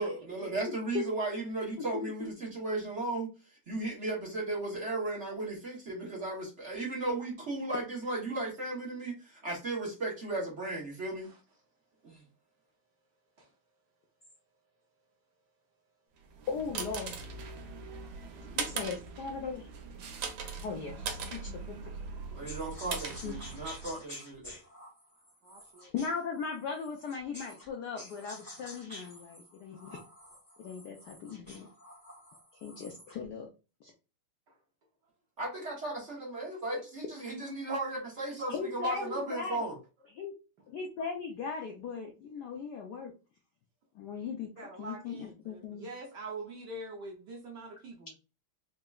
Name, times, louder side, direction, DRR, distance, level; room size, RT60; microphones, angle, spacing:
voice 1, 0.0-3.3 3.7-11.3 12.0-12.2 22.3-24.4 35.4-39.8, right 2 dB, 45° right, 1.0 m, -35 dB
voice 2, 0.7-1.0 1.9-2.3 16.5-17.1 18.4-19.6 20.6-21.9 23.2-23.5 25.9-30.0 30.6-31.7 32.6-33.5 33.8-33.9 38.5-39.7 40.1-40.3 40.7-43.1 43.9-45.9, left 5 dB, 75° left, 0.9 m, -38 dB
sound 1, 16.2-24.0, right 5 dB, 85° right, 1.8 m, -40 dB
sound 2, 22.5-27.7 28.0-33.3, left 1 dB, 10° left, 1.4 m, -50 dB
voice 3, 25.4-25.9 34.5-34.6 44.6-48.1, right 2 dB, 65° right, 1.1 m, -44 dB
4.3 x 2.8 x 2.3 m
omnidirectional pair, 2.4 m